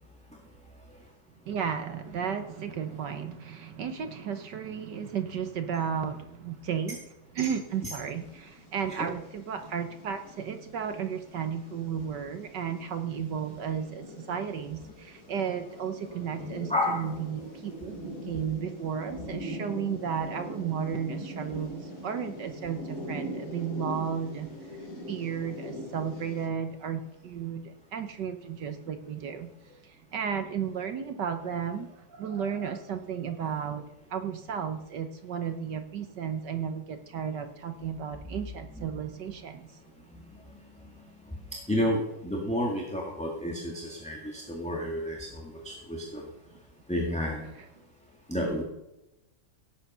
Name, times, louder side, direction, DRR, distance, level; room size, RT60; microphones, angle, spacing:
voice 1, 1.5-7.0 7.3-24.8 25.1-29.5 29.8-33.8 34.1-39.7, right 7 dB, 65° right, 8 dB, 1.5 m, -34 dB
sound 1, 7.6-26.5, equal, 90° left, 4.2 m, -42 dB
voice 2, 16.4-17.0 38.8-38.9 41.7-46.2 46.9-47.4 48.3-48.6, left 1 dB, 5° left, -1 dB, 1.8 m, -31 dB
17.0 x 8.4 x 5.5 m, 0.92 s
omnidirectional pair, 2.2 m